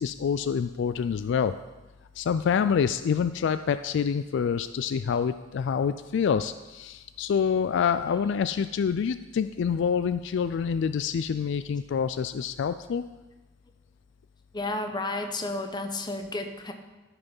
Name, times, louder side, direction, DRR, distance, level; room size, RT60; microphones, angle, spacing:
voice 1, 0.0-1.5 2.2-13.0, left 7 dB, 65° left, 11 dB, 0.3 m, -27 dB
voice 2, 14.5-16.7, left 2 dB, 20° left, 5 dB, 0.9 m, -32 dB
13.5 x 5.7 x 5.4 m, 1.2 s
head